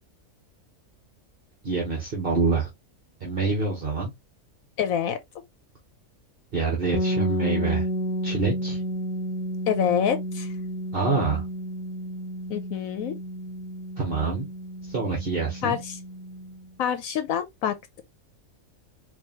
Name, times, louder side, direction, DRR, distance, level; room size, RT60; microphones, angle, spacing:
voice 1, 1.6-2.7 3.2-4.1 6.5-7.8 8.2-8.8 10.9-11.4 14.0-14.5 14.8-15.8, right 4 dB, 40° right, 1.3 m, -26 dB
voice 2, 4.8-5.2 9.7-10.5 12.5-13.2 15.6-16.0 16.8-18.0, left 9 dB, 75° left, 1.0 m, -26 dB
sound 1, 6.9-16.7, equal, ahead, 0.6 m, -31 dB
4.7 x 2.6 x 2.8 m
omnidirectional pair, 1.5 m